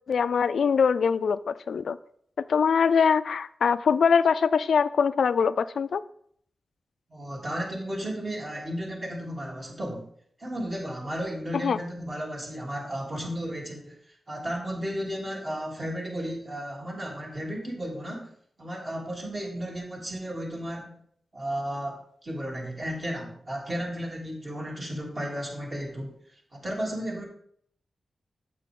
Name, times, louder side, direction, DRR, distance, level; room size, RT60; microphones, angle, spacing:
voice 1, 0.1-2.0 2.4-6.0 11.6-11.8, left 6 dB, 80° left, 15 dB, 0.3 m, -23 dB
voice 2, 7.1-10.1 10.4-18.3 18.6-21.0 21.3-27.3, equal, 40° right, -2 dB, 3.1 m, -34 dB
8.6 x 7.5 x 3.7 m, 0.65 s
cardioid pair, 75°, 0 cm